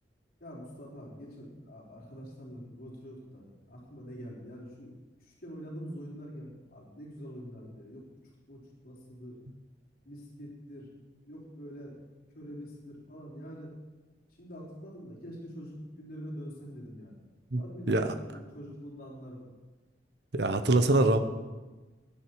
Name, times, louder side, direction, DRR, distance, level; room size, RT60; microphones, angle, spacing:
voice 1, 0.4-4.9 5.2-8.0 8.5-9.4 10.0-10.9 11.2-12.0 12.3-13.7 14.4-17.1 17.5-19.4, equal, 55° left, -3 dB, 4.0 m, -45 dB
voice 2, 20.3-21.2, right 2 dB, 65° right, 10 dB, 1.0 m, -24 dB
16.5 x 10.0 x 4.8 m, 1.2 s
head